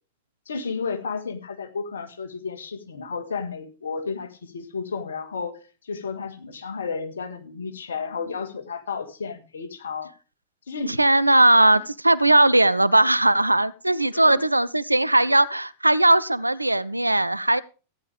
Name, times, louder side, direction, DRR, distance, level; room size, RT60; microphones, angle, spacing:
voice 1, 0.5-5.6 5.8-10.1 10.7-11.0 11.7-11.8 14.1-14.4, left 5 dB, 70° left, 1.9 m, -32 dB
voice 2, 10.9-17.6, right 1 dB, 85° right, 0.6 m, -19 dB
15.0 x 10.0 x 3.5 m
figure-of-eight pair, 90°, 0 cm